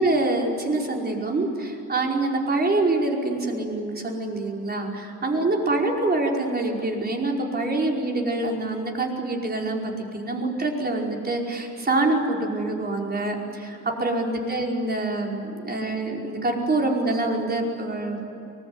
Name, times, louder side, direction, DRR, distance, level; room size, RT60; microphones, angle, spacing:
voice 1, 0.0-18.3, right 2 dB, 30° right, 0 dB, 5.1 m, -25 dB
24.0 x 21.0 x 9.8 m, 2.9 s
cardioid pair, 90°, 30 cm